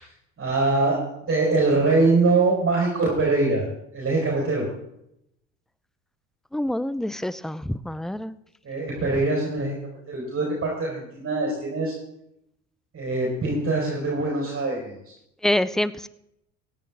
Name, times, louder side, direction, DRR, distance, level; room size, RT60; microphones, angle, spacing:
voice 1, 0.4-3.6 3.9-4.7 8.6-9.7 10.1-11.9 12.9-14.9, right 3 dB, 35° right, -3 dB, 4.4 m, -23 dB
voice 2, 6.5-8.4 15.4-16.1, left 1 dB, ahead, 17 dB, 0.4 m, -26 dB
17.0 x 10.5 x 3.6 m, 0.80 s
hypercardioid pair, 70°, 36 cm